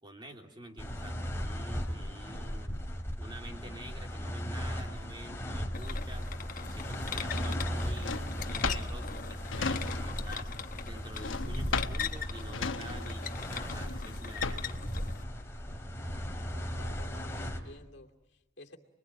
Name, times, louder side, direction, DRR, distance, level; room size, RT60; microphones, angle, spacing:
voice 1, 0.0-2.7 3.2-6.3 6.7-10.5 10.8-14.8, right 1 dB, 25° right, 3 dB, 3.0 m, -48 dB
sound 1, 0.8-17.6, equal, 15° left, 2.6 m, -37 dB
sound 2, 5.7-15.2, left 7 dB, 45° left, 1.1 m, -42 dB
Drawer open or close, 7.2-10.3 10.6-14.8, left 4 dB, 80° left, 1.1 m, -36 dB
voice 2, 16.5-18.8, left 2 dB, 60° left, 4 dB, 2.6 m, -53 dB
29.5 x 22.0 x 9.0 m, 0.99 s
head